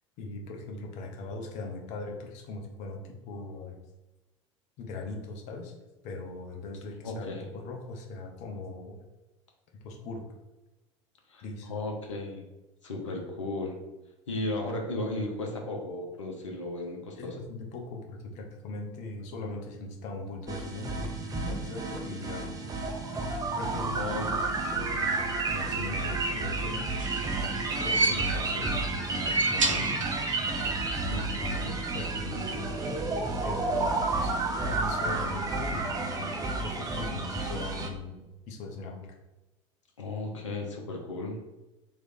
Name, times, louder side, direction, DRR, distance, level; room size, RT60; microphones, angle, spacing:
voice 1, 0.2-3.8 4.8-5.7 6.0-9.0 9.8-10.2 11.4-11.7 17.2-21.1 21.5-22.5 23.5-24.2 24.7-25.2 25.5-27.0 27.8-30.0 30.5-32.8 33.4-33.9 34.2-34.4 34.6-38.2 38.5-39.1, left 3 dB, 45° left, 1 dB, 0.9 m, -39 dB
voice 2, 7.0-7.4 11.3-12.4 12.8-13.8 14.3-17.4 24.0-24.3 40.0-41.4, left 2 dB, 75° left, 0 dB, 0.9 m, -35 dB
sound 1, 20.5-37.9, right 3 dB, 20° right, 0.7 m, -31 dB
sound 2, 26.7-28.6 29.1-30.5 30.8-30.9 32.0-32.1, right 2 dB, 85° right, 0.4 m, -30 dB
3.3 x 3.2 x 4.1 m, 1.0 s
figure-of-eight pair, 70°, 16 cm